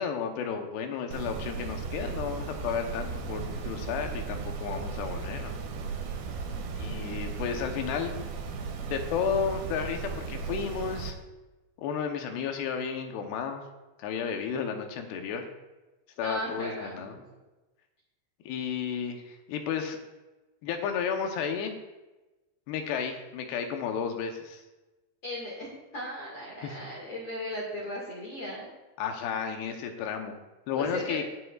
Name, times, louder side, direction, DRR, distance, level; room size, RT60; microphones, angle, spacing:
voice 1, 0.0-5.6 6.8-8.1 8.8-11.1 11.8-13.6 14.0-15.4 16.2-17.2 18.5-20.0 20.6-21.7 22.7-24.6 26.6-26.7 29.0-30.3 30.7-31.2, left 7 dB, 80° left, 5 dB, 2.9 m, -32 dB
sound 1, 1.1-11.1, right 5 dB, 90° right, 3.5 m, -36 dB
voice 2, 16.2-17.1 25.2-28.7 30.7-31.2, equal, 45° left, -4 dB, 2.1 m, -37 dB
21.0 x 7.9 x 2.4 m, 1.1 s
omnidirectional pair, 4.8 m